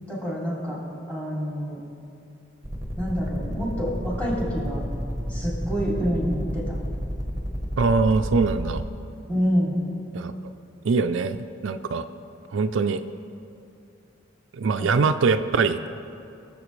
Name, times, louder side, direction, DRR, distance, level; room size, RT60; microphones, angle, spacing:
voice 1, 0.1-0.8 1.1-1.8 3.0-4.8 5.3-6.7 9.3-9.8 14.8-14.9, equal, 10° left, -6 dB, 2.8 m, -27 dB
sound 1, 2.6-8.8, equal, 15° right, 0.9 m, -30 dB
voice 2, 7.8-8.8 10.1-10.3 10.8-11.4 11.6-12.1 12.5-13.0 14.5-15.8, right 4 dB, 75° right, 9 dB, 0.4 m, -22 dB
22.0 x 7.4 x 3.2 m, 2.6 s
head